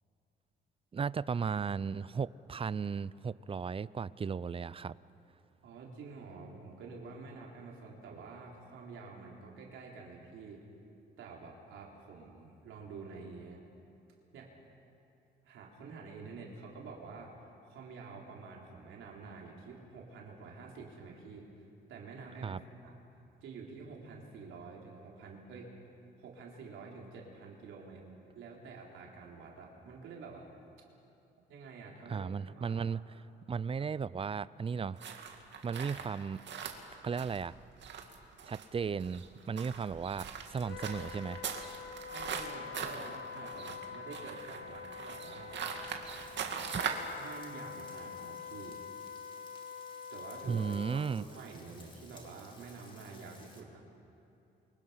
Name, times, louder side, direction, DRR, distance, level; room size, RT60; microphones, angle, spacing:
voice 1, 0.9-5.0 22.4-22.6 32.1-35.0 35.6-36.4 37.0-37.6 38.5-41.4 46.7-46.8 50.5-51.3, right 6 dB, 30° right, 19 dB, 0.5 m, -35 dB
voice 2, 5.6-10.6 11.2-13.7 14.3-14.5 15.4-17.3 17.7-21.5 21.9-23.0 23.4-25.7 26.2-28.1 28.3-30.5 31.5-32.8 42.1-45.6 47.2-48.8 50.1-53.8, right 4 dB, 80° right, -2 dB, 3.8 m, -48 dB
sound 1, 35.0-47.1, right 6 dB, 65° right, 2.3 m, -41 dB
Wind instrument woodwind instrument, 40.6-51.0, left 7 dB, 65° left, 1.7 m, -46 dB
Frying (food), 46.1-53.6, left 2 dB, 25° left, 3.4 m, -58 dB
28.5 x 24.0 x 5.8 m, 2.7 s
cardioid pair, 90°, 20 cm